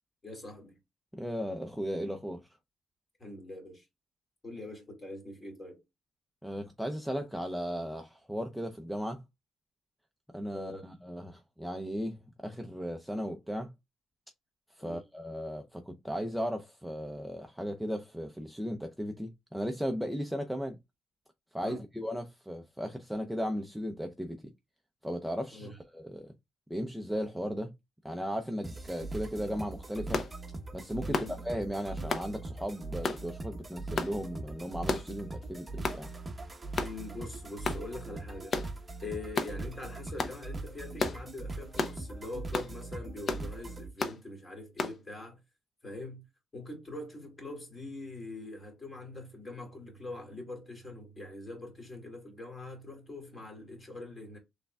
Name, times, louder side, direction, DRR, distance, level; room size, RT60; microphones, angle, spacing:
voice 1, 0.2-0.8 3.2-3.9 4.4-5.8 10.5-10.8 14.8-15.0 21.6-21.8 25.5-25.8 31.1-31.3 36.8-38.6 39.0-45.4 45.8-46.2 46.5-54.4, left 2 dB, 25° left, 2.4 m, -43 dB
voice 2, 1.1-2.5 6.4-9.2 10.3-13.7 14.7-20.8 21.5-24.4 25.0-26.3 26.7-27.7 28.0-30.2 30.7-36.1, equal, ahead, 0.6 m, -36 dB
sound 1, 28.6-43.9, right 2 dB, 20° right, 0.9 m, -41 dB
sound 2, 30.1-30.3 31.1-31.3 32.1-32.3 33.0-33.2 34.0-34.1 34.9-35.1 35.8-36.0 36.8-37.0 37.6-37.8 38.5-38.7 39.3-39.5 40.2-40.4 41.0-41.2 41.8-42.0 42.5-42.7 43.3-43.5 44.0-44.2 44.8-45.0, left 3 dB, 45° left, 0.7 m, -32 dB
6.5 x 3.5 x 2.3 m
cardioid pair, 115°, 0 cm